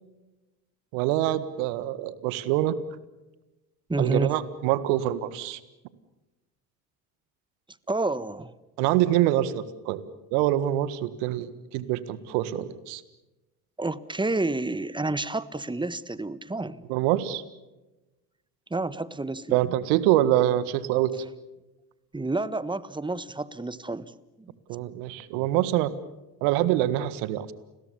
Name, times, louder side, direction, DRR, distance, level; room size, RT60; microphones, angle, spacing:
voice 1, 0.9-2.8 4.0-5.6 8.8-10.0 10.3-13.0 16.9-17.4 19.5-21.1 24.7-25.9 26.4-27.5, right 13 dB, 70° right, 16 dB, 1.7 m, -25 dB
voice 2, 3.9-4.3 7.9-8.5 13.8-16.8 18.7-19.6 22.1-24.5, right 2 dB, 10° right, 17 dB, 1.3 m, -29 dB
30.0 x 21.5 x 7.1 m, 1.0 s
hypercardioid pair, 60°, 45 cm